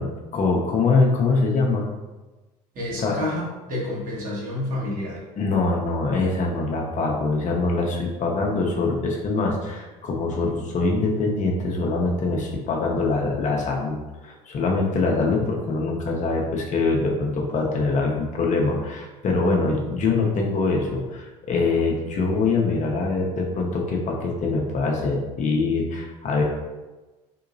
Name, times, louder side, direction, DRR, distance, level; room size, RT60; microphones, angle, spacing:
voice 1, 0.0-1.9 3.0-3.1 5.4-26.4, left 3 dB, 45° left, 0 dB, 0.7 m, -23 dB
voice 2, 2.7-5.2, left 1 dB, 50° right, -5 dB, 1.4 m, -29 dB
3.7 x 2.8 x 2.6 m, 1.2 s
hypercardioid pair, 75°, 18 cm